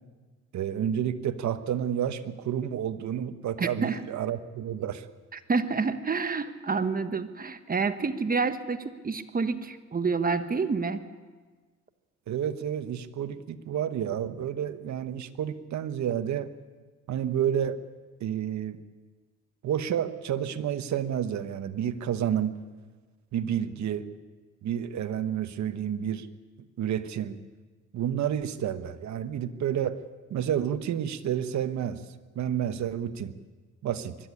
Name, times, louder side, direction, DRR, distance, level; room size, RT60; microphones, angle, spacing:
voice 1, 0.5-5.1 12.3-16.5 17.1-17.8 18.2-18.8 19.6-22.6 23.3-24.1 24.6-26.3 26.8-27.4 27.9-30.0 30.3-32.0 32.3-33.3 33.8-34.2, right 9 dB, 65° right, 11 dB, 1.2 m, -30 dB
voice 2, 3.6-4.0 5.3-11.0, right 4 dB, 30° right, 10 dB, 1.4 m, -28 dB
21.5 x 13.0 x 9.9 m, 1.4 s
cardioid pair, 90°, 30 cm